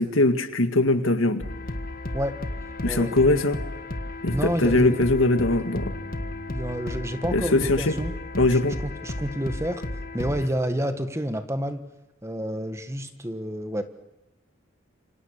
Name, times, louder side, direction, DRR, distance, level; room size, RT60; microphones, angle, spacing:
voice 1, 0.0-1.5 2.8-3.6 4.2-5.9 7.3-8.0 8.4-8.8, left 2 dB, 85° left, 8 dB, 2.0 m, -21 dB
sound 1, 1.4-10.5, left 1 dB, 45° left, 1.7 m, -33 dB
voice 2, 2.8-3.2 4.3-5.0 6.5-8.1 8.6-9.8 10.1-11.8 12.2-13.8, equal, 15° right, 8 dB, 1.5 m, -29 dB
28.0 x 25.0 x 6.7 m, 1.0 s
head